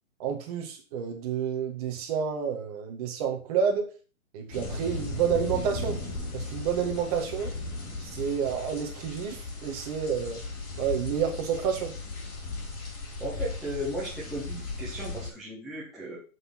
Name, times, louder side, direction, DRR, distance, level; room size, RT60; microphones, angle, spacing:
voice 1, 0.2-3.9 4.3-6.0 6.3-7.5 8.0-10.4 10.8-11.9, right 7 dB, 25° right, 2 dB, 2.0 m, -29 dB
sound 1, 4.5-15.3, left 2 dB, 20° left, 4.6 m, -36 dB
voice 2, 13.2-16.2, right 1 dB, ahead, -9 dB, 0.6 m, -36 dB
7.7 x 6.5 x 5.8 m, 0.36 s
hypercardioid pair, 150°, 41 cm